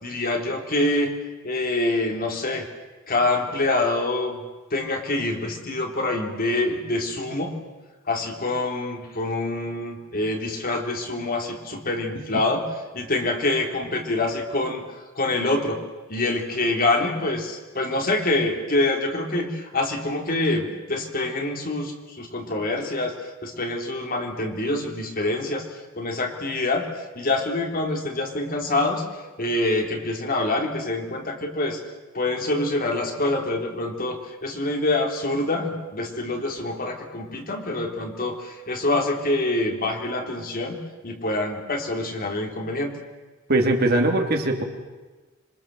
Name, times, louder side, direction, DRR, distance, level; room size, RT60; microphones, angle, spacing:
voice 1, 0.0-1.1 1.4-2.7 3.1-4.4 4.7-7.5 8.1-12.7 12.9-14.8 15.1-15.8 16.1-25.6 25.9-26.9 27.1-29.0 29.4-31.8 32.1-40.8 41.0-43.0, left 2 dB, 45° left, 3 dB, 3.3 m, -26 dB
voice 2, 43.5-44.6, right 2 dB, 50° right, 3 dB, 3.0 m, -21 dB
26.5 x 23.5 x 7.7 m, 1.2 s
head